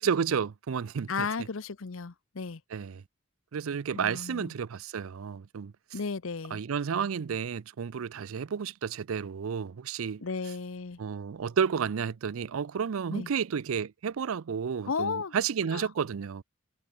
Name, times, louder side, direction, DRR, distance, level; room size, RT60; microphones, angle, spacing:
voice 1, 0.0-1.1 2.7-3.0 3.5-5.7 6.5-10.2 11.0-16.4, right 6 dB, 80° right, 0.5 m, -31 dB
voice 2, 1.1-2.6 3.9-4.5 5.9-6.6 10.2-11.0 13.1-13.3 14.9-15.4 15.6-15.9, left 5 dB, 75° left, 0.8 m, -34 dB
head